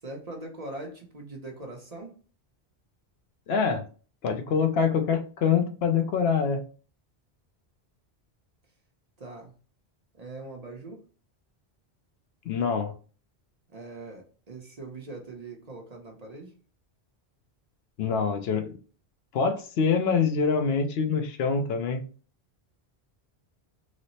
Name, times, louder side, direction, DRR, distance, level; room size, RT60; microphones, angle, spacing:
voice 1, 0.0-2.2 9.2-9.5 10.1-11.0 13.7-16.5, right 2 dB, 40° right, 1 dB, 0.8 m, -41 dB
voice 2, 3.5-3.9 4.2-6.6 12.4-12.9 18.0-18.8 19.3-22.0, left 6 dB, 75° left, 7 dB, 0.8 m, -25 dB
3.1 x 2.0 x 3.9 m, 0.39 s
omnidirectional pair, 1.1 m